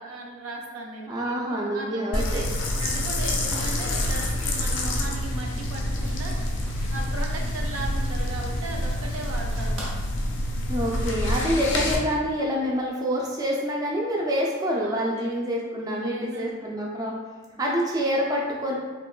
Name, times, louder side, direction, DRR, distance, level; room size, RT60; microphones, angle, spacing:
voice 1, 0.0-2.5 2.7-6.4 6.9-9.9 14.8-15.4 15.9-16.6 17.5-17.6, right 2 dB, 90° right, 1 dB, 0.4 m, -37 dB
voice 2, 1.1-2.4 10.7-17.1 17.6-18.7, equal, 20° right, -3 dB, 0.3 m, -27 dB
sound 1, 2.1-12.0, left 1 dB, 60° left, 0.4 m, -27 dB
Rain, 2.7-9.9, equal, 70° right, 0.8 m, -40 dB
2.9 x 2.2 x 2.3 m, 1.4 s
head